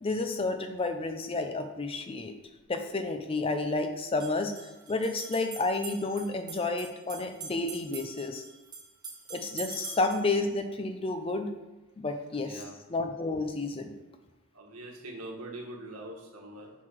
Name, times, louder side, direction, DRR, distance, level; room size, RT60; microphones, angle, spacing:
voice 1, 0.0-2.3 2.7-8.4 9.3-11.5 12.0-12.6 12.9-13.9, left 3 dB, 25° left, 6 dB, 0.4 m, -31 dB
sound 1, 2.4-2.5 4.0-10.3, right 5 dB, 20° right, 1.1 m, -44 dB
voice 2, 12.3-12.8 14.5-16.7, right 1 dB, 85° right, 0 dB, 1.3 m, -43 dB
6.1 x 3.9 x 4.5 m, 1.1 s
head